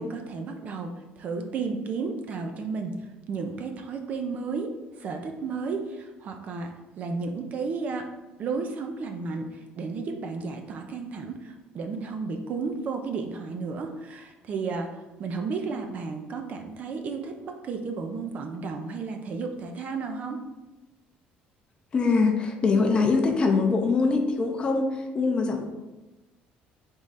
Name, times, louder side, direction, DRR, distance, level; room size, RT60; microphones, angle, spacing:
voice 1, 0.0-3.0 3.3-8.1 8.4-20.4, right 4 dB, 40° right, 4 dB, 0.5 m, -33 dB
voice 2, 21.9-25.6, left 4 dB, 25° left, 3 dB, 0.5 m, -23 dB
3.6 x 3.2 x 4.0 m, 1.1 s
cardioid pair, 145°, 4 cm